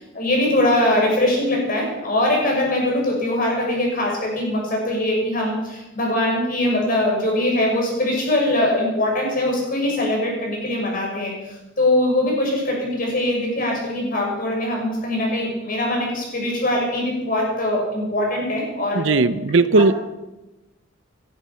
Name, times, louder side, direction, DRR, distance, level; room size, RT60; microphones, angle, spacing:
voice 1, 0.0-19.1, left 1 dB, 45° left, -1 dB, 6.0 m, -22 dB
voice 2, 18.9-19.9, right 3 dB, 70° right, 14 dB, 0.7 m, -17 dB
18.5 x 11.5 x 5.8 m, 1.1 s
head